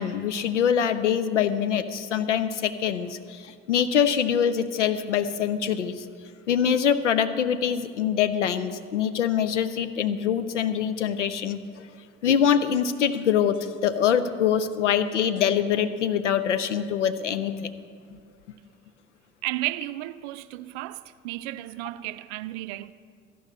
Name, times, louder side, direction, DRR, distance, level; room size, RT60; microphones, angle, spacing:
voice 1, 0.0-6.0 6.5-11.9 12.2-17.7, left 8 dB, 90° left, 0.5 m, -24 dB
voice 2, 19.4-22.9, right 17 dB, 70° right, 0.5 m, -33 dB
13.5 x 5.4 x 8.5 m
figure-of-eight pair, 55°, 35 cm